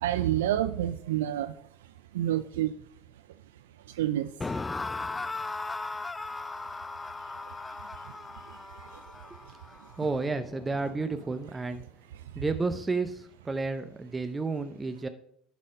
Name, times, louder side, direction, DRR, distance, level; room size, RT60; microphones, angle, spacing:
voice 1, 0.0-1.5 2.1-2.7 4.0-4.3, right 12 dB, 85° right, 12 dB, 0.3 m, -27 dB
sound 1, 4.4-11.5, left 3 dB, 20° left, 0.3 m, -38 dB
voice 2, 10.0-11.8 12.4-15.1, right 3 dB, 20° right, 8 dB, 0.7 m, -31 dB
11.0 x 4.1 x 5.1 m, 0.69 s
hypercardioid pair, 80°, 0 cm